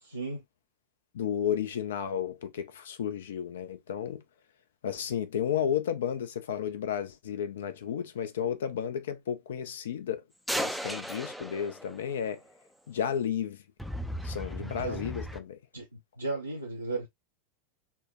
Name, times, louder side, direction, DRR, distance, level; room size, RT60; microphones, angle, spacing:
voice 1, 0.0-0.4 14.8-15.1 15.7-17.1, right 3 dB, 85° right, 0.6 m, -35 dB
voice 2, 1.1-4.2 4.8-10.2 10.6-12.4 12.9-13.6 14.2-15.6, left 8 dB, 60° left, 0.5 m, -32 dB
sound 1, 10.5-12.3 13.8-15.4, equal, ahead, 0.4 m, -36 dB
4.4 x 2.1 x 2.6 m
figure-of-eight pair, 90°, 0 cm